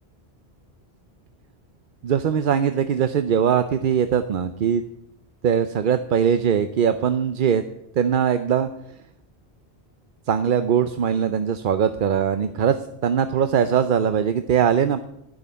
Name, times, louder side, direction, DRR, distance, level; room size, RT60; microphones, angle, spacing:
voice 1, 2.0-4.8 5.4-7.6 8.0-8.7 10.3-15.1, right 8 dB, 60° right, 10 dB, 0.7 m, -21 dB
12.0 x 6.5 x 8.3 m, 0.79 s
omnidirectional pair, 1.1 m